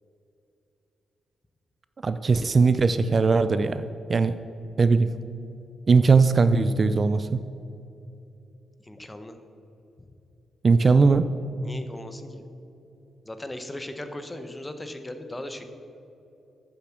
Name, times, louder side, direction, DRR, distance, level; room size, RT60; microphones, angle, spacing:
voice 1, 2.0-4.4 4.8-5.1 5.9-7.4 10.6-11.3, right 4 dB, 40° right, 11 dB, 0.3 m, -20 dB
voice 2, 8.8-9.4 11.5-12.4 13.2-15.7, left 1 dB, 15° left, 8 dB, 0.9 m, -38 dB
9.7 x 7.1 x 7.2 m, 2.9 s
cardioid pair, 105°, 0 cm